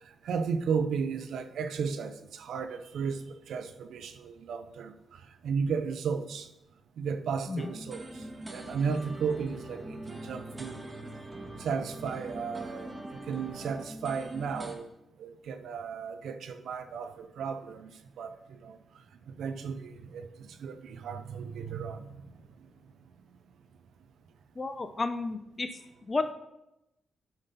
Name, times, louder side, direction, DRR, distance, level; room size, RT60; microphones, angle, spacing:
voice 1, 0.0-6.5 7.0-10.8 11.6-14.9 15.2-17.9 18.2-22.7, right 6 dB, 75° right, 9 dB, 0.6 m, -35 dB
sound 1, 7.6-14.8, right 1 dB, 30° right, 1.5 m, -42 dB
voice 2, 24.6-25.7 26.1-26.3, left 3 dB, 35° left, 9 dB, 0.6 m, -32 dB
8.9 x 5.3 x 4.2 m, 0.91 s
supercardioid pair, 55°, 0 cm